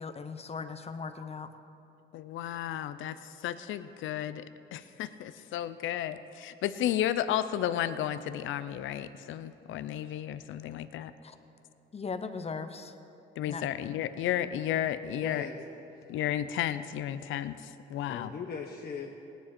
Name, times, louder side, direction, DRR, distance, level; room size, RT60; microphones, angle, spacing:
voice 1, 0.0-1.5 11.2-11.3 11.9-12.9 13.5-13.6, left 5 dB, 30° left, 9 dB, 0.8 m, -38 dB
voice 2, 2.1-4.4 4.7-11.1 13.4-15.5 16.1-18.3, left 11 dB, 80° left, 13 dB, 0.5 m, -33 dB
voice 3, 15.0-15.6 15.9-16.1 18.1-19.3, left 6 dB, 50° left, 0 dB, 1.0 m, -40 dB
18.0 x 10.0 x 4.3 m, 2.8 s
cardioid pair, 90°, 20 cm